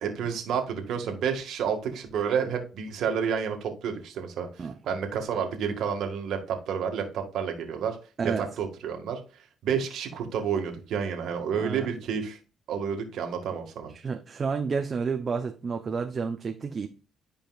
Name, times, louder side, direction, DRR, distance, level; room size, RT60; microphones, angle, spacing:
voice 1, 0.0-4.5 4.9-8.0 8.2-9.2 9.6-12.4 12.7-13.9, right 7 dB, 80° right, 1.8 m, -30 dB
voice 2, 13.9-16.9, right 5 dB, 40° right, 0.7 m, -30 dB
11.5 x 5.1 x 2.4 m
cardioid pair, 90°, 0 cm